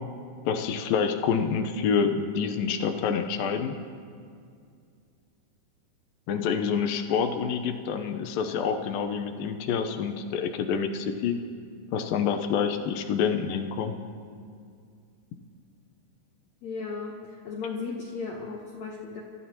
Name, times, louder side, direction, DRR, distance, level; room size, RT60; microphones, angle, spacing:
voice 1, 0.5-3.7 6.3-11.3 11.9-14.0, left 6 dB, 80° left, 5 dB, 2.5 m, -27 dB
voice 2, 16.6-19.2, left 4 dB, 65° left, -1 dB, 1.9 m, -35 dB
29.5 x 14.0 x 2.9 m, 2.3 s
omnidirectional pair, 4.1 m